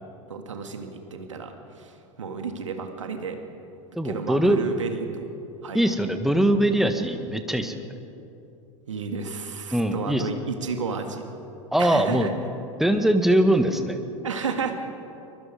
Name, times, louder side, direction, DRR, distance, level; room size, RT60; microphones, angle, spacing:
voice 1, 0.3-3.4 4.0-5.3 5.6-5.8 8.9-11.2 11.8-12.3 14.2-14.7, right 5 dB, 70° right, 5 dB, 2.1 m, -32 dB
voice 2, 4.0-4.6 5.7-7.8 9.7-10.2 11.7-12.3 12.8-14.0, right 1 dB, ahead, 7 dB, 1.6 m, -21 dB
24.0 x 22.5 x 5.2 m, 2.8 s
figure-of-eight pair, 85°, 16 cm